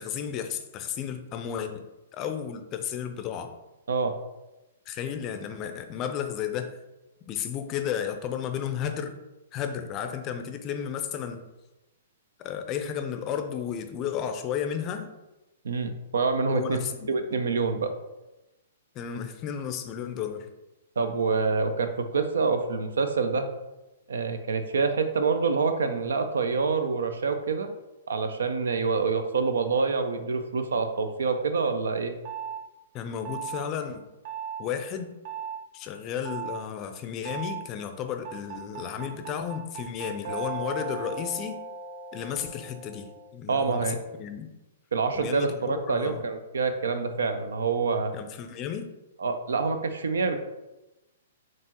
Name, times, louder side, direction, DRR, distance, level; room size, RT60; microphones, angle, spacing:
voice 1, 0.0-1.8 2.1-3.5 4.9-6.8 7.3-9.1 9.5-11.4 12.4-15.1 16.5-17.4 18.9-20.5 32.9-34.0 34.6-35.1 35.7-41.6 42.1-44.5 45.1-46.3 48.1-48.9, left 8 dB, 30° left, 7 dB, 0.4 m, -33 dB
voice 2, 3.9-4.2 15.6-16.8 17.1-17.9 21.0-23.5 24.1-27.7 28.1-32.1 43.5-44.0 44.9-48.1 49.2-50.4, right 4 dB, 75° right, 8 dB, 0.4 m, -26 dB
sound 1, 32.3-32.6 33.3-33.6 34.3-34.6 35.3-35.6 36.3-36.6 37.3-37.6 38.3-43.3, right 6 dB, 55° right, 0.8 m, -37 dB
4.3 x 3.0 x 2.9 m, 1.0 s
hypercardioid pair, 115°, 0 cm